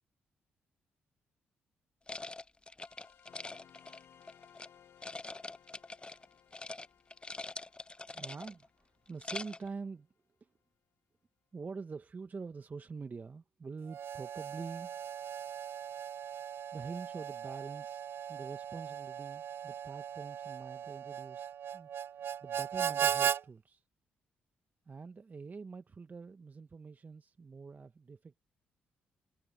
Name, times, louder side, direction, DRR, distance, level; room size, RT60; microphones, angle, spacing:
sound 1, 2.1-4.7 5.0-6.3 6.5-6.9 7.1-8.7 9.1-9.7, left 3 dB, 20° left, 0.7 m, -44 dB
sound 2, 2.8-9.9, left 9 dB, 65° left, 1.1 m, -63 dB
voice 1, 8.0-10.1 10.4-10.5 11.5-15.0 16.7-23.8 24.9-28.4, right 4 dB, 40° right, 1.2 m, -46 dB
Harmonica, 13.9-23.4, right 9 dB, 60° right, 0.4 m, -37 dB
supercardioid pair, 50°, 5 cm